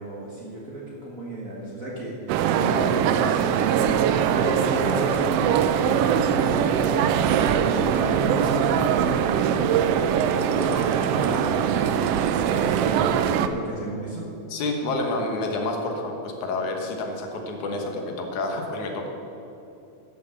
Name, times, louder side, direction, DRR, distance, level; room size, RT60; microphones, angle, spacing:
voice 1, 0.0-3.8 4.3-10.0 10.5-11.8 12.5-14.3, right 1 dB, 35° right, -5 dB, 1.4 m, -32 dB
sound 1, 2.3-13.5, right 8 dB, 90° right, 1.4 m, -22 dB
voice 2, 14.5-19.1, left 2 dB, 85° left, 2 dB, 2.7 m, -29 dB
12.0 x 6.7 x 6.9 m, 2.8 s
omnidirectional pair, 3.3 m